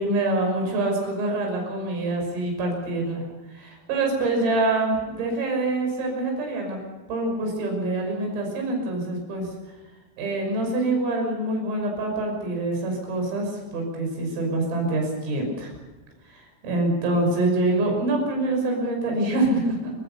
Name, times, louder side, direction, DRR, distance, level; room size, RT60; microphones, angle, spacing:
voice 1, 0.0-3.2 3.5-6.8 7.1-9.5 10.2-15.7 16.3-19.9, right 2 dB, 75° right, 2 dB, 8.5 m, -25 dB
29.0 x 16.0 x 6.9 m, 1.2 s
omnidirectional pair, 6.0 m